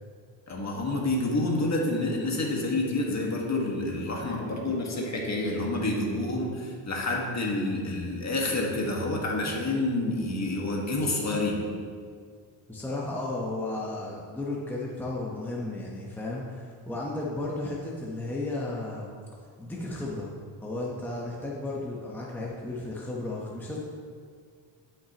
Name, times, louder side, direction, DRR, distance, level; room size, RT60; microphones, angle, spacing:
voice 1, 0.5-11.6, left 2 dB, 35° left, -1 dB, 1.7 m, -28 dB
voice 2, 12.7-19.1 19.6-20.3 20.6-23.8, left 2 dB, 5° left, -4 dB, 1.0 m, -34 dB
12.0 x 5.9 x 3.0 m, 2.1 s
cardioid pair, 95°, 45 cm